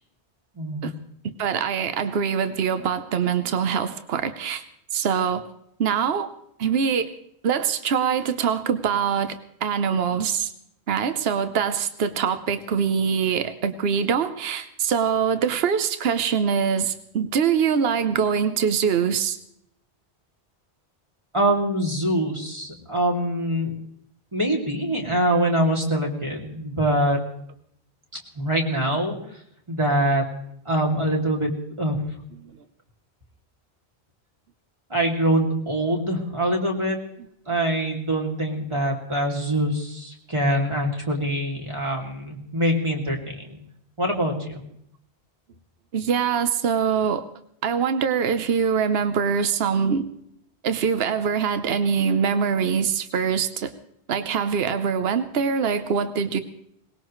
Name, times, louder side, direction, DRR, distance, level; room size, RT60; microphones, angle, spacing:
voice 1, 0.5-0.9 21.3-23.7 24.3-27.2 28.3-29.4 29.7-30.3 30.6-32.0 34.9-37.0 37.5-43.6 44.0-44.6, right 1 dB, 25° right, -1 dB, 2.7 m, -24 dB
voice 2, 1.2-4.6 4.9-5.5 5.8-6.3 6.6-7.2 7.4-10.5 10.9-19.4 45.9-47.2 47.6-50.1 50.6-53.7 54.1-56.4, right 7 dB, 70° right, 10 dB, 1.1 m, -23 dB
21.5 x 19.5 x 3.2 m, 0.73 s
omnidirectional pair, 1.1 m